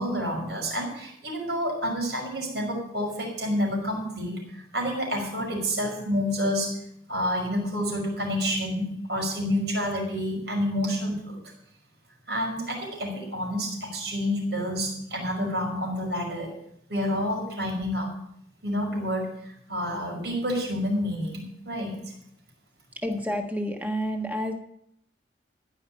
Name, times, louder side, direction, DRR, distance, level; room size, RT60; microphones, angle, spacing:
voice 1, 0.0-6.7 7.1-11.4 12.3-16.5 16.9-18.1 18.6-22.1, equal, 65° right, 0 dB, 5.4 m, -29 dB
voice 2, 23.0-24.5, equal, 10° right, 3 dB, 1.4 m, -29 dB
14.5 x 5.9 x 8.9 m, 0.72 s
head